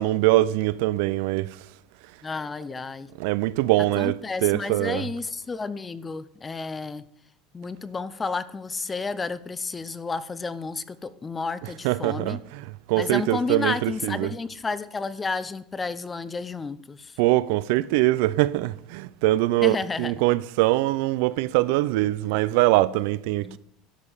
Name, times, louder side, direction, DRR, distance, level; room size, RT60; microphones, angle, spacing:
voice 1, 0.0-1.7 3.2-5.1 11.8-14.3 17.2-23.6, right 17 dB, 75° right, 0.4 m, -23 dB
voice 2, 2.2-3.1 4.0-7.0 7.5-12.4 13.0-17.2 19.6-20.1 23.4-23.6, left 4 dB, 15° left, 0.5 m, -31 dB
12.5 x 5.1 x 5.6 m
supercardioid pair, 135°, 0 cm